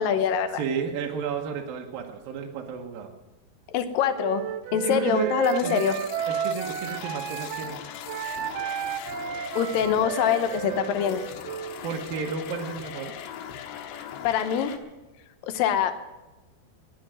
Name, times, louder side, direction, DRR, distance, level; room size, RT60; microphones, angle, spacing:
voice 1, 0.0-0.6 3.7-4.4 4.7-5.9 9.6-11.2 14.2-14.7 15.5-15.9, left 8 dB, 75° left, 9 dB, 2.2 m, -24 dB
voice 2, 0.5-3.1 4.7-5.3 5.6-5.8 6.3-7.8 11.8-13.1, right 7 dB, 70° right, 1 dB, 2.6 m, -32 dB
Wind instrument woodwind instrument, 4.2-7.7 8.1-11.8, right 8 dB, 85° right, 1.9 m, -32 dB
sound 1, 5.4-14.8, left 9 dB, 90° left, 3.3 m, -40 dB
20.5 x 7.9 x 7.5 m, 1.1 s
omnidirectional pair, 4.9 m